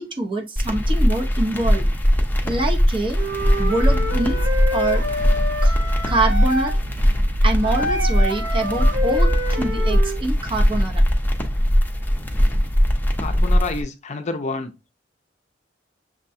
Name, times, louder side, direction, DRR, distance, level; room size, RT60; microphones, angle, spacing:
voice 1, 0.0-1.9 2.4-3.2 3.6-4.4 4.7-5.0 5.6-5.8 6.1-6.8 7.4-11.0, right 2 dB, 30° right, 0.8 m, -25 dB
sound 1, 0.6-13.8, equal, 10° left, 0.7 m, -20 dB
Wind instrument woodwind instrument, 3.1-6.8 7.6-10.2, left 1 dB, 85° right, 1.1 m, -27 dB
sound 2, 3.8-12.8, left 1 dB, 60° right, 1.6 m, -35 dB
voice 2, 13.2-14.7, left 3 dB, 40° left, 0.5 m, -28 dB
6.5 x 2.2 x 2.6 m
head